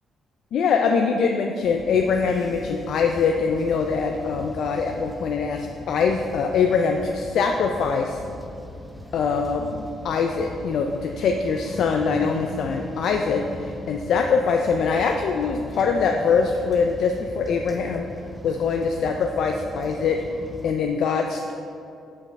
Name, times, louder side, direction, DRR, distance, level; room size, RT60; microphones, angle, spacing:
voice 1, 0.5-8.2 9.1-18.1 18.4-20.2 20.6-21.5, left 5 dB, 70° left, 3 dB, 0.3 m, -23 dB
sound 1, 1.6-20.7, equal, ahead, 0.5 m, -39 dB
5.3 x 5.2 x 3.6 m, 2.6 s
cardioid pair, 90°, 0 cm